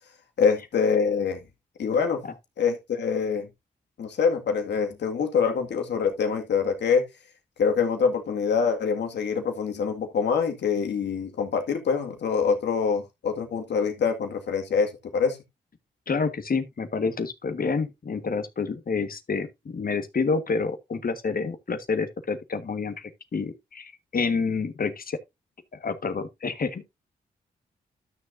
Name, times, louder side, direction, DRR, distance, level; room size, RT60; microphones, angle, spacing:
voice 1, 0.4-1.4 1.8-2.2 2.6-3.5 4.0-7.0 7.6-15.4, left 6 dB, 70° left, 2.1 m, -25 dB
voice 2, 16.1-25.2 25.7-26.8, left 4 dB, 50° left, 1.6 m, -28 dB
12.5 x 6.5 x 2.7 m
supercardioid pair, 40°, 18 cm